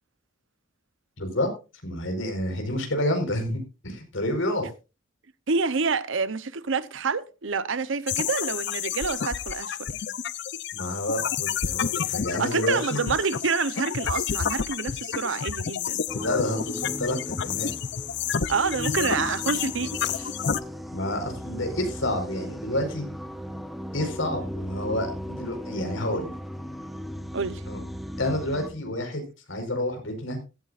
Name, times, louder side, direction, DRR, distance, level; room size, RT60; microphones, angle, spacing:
voice 1, 1.2-1.5 1.8-4.7 10.7-13.0 16.1-17.7 20.9-23.0 23.9-26.3 27.7-27.8 28.2-30.4, left 1 dB, 75° left, 4.5 m, -29 dB
voice 2, 5.5-10.0 12.4-16.0 18.5-20.3 27.3-27.6, right 5 dB, 70° right, 0.8 m, -28 dB
sound 1, 8.1-20.6, left 8 dB, 60° left, 0.6 m, -30 dB
sound 2, 16.1-28.7, equal, ahead, 1.0 m, -37 dB
16.0 x 13.5 x 2.5 m
head